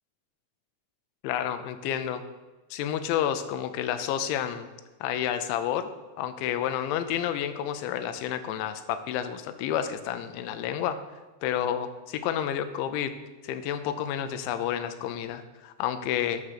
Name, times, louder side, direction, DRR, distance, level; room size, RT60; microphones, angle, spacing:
voice 1, 1.2-2.2 2.7-4.7 5.0-5.9 6.2-11.0 11.4-13.1 13.4-16.4, left 10 dB, 80° left, 9 dB, 2.8 m, -30 dB
9.5 x 6.4 x 5.7 m, 1.2 s
omnidirectional pair, 5.7 m